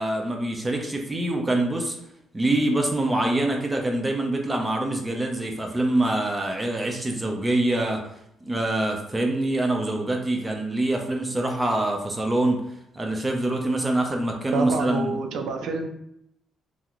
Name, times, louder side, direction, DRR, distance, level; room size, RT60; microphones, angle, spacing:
voice 1, 0.0-2.0 2.3-8.0 8.4-12.6 12.9-15.2, right 1 dB, 20° right, 2 dB, 0.6 m, -25 dB
voice 2, 14.5-15.9, right 3 dB, 75° right, 4 dB, 0.4 m, -27 dB
2.8 x 2.0 x 3.6 m, 0.79 s
cardioid pair, 90°, 0 cm